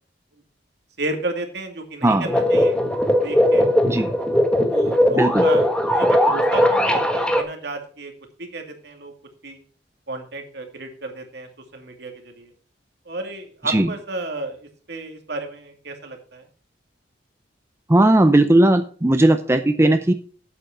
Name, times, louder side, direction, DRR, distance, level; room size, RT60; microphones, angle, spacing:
voice 1, 1.0-2.7 3.2-3.7 4.7-8.1 8.4-9.1 9.4-9.6 10.1-12.5 13.1-16.4, right 2 dB, 65° right, 4 dB, 2.3 m, -32 dB
sound 1, 2.2-7.4, left 1 dB, 5° left, 1.4 m, -19 dB
voice 2, 5.1-5.5 13.6-13.9 17.9-20.1, right 1 dB, 15° right, 8 dB, 0.5 m, -17 dB
8.5 x 8.0 x 5.7 m, 0.42 s
head